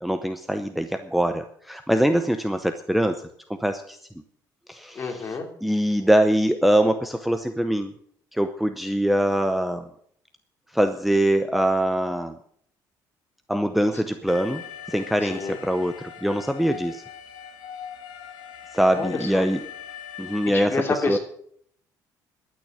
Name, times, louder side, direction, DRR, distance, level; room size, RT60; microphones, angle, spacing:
voice 1, 0.0-3.2 3.6-4.0 4.7-5.2 5.6-7.9 8.3-9.9 10.7-12.4 13.5-14.6 14.9-17.0 18.7-19.6 20.2-20.8 21.1-21.2, right 1 dB, ahead, 8 dB, 0.7 m, -23 dB
voice 2, 4.9-5.5 15.2-15.6 18.9-19.4 20.5-21.2, left 3 dB, 30° left, 3 dB, 3.0 m, -28 dB
Alarm, 14.3-20.5, left 9 dB, 90° left, 2.2 m, -40 dB
12.0 x 9.3 x 8.2 m, 0.64 s
cardioid pair, 145°, 8 cm